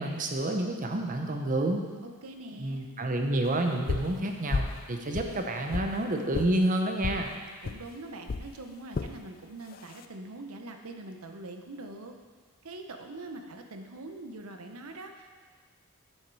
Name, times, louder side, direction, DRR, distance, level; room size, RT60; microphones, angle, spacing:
voice 1, 0.0-1.8 2.5-7.3, right 1 dB, 40° right, 3 dB, 0.9 m, -29 dB
voice 2, 2.0-2.9 7.6-12.1 12.6-15.3, right 2 dB, 75° right, 5 dB, 0.8 m, -43 dB
sound 1, 3.9-4.1 4.5-4.8 5.1-5.9 6.3-6.5 7.0-7.2 7.6-7.8 8.3-8.5 8.9-9.1 9.7-10.0, left 4 dB, 45° left, 0.4 m, -32 dB
8.1 x 7.3 x 4.8 m, 1.5 s
head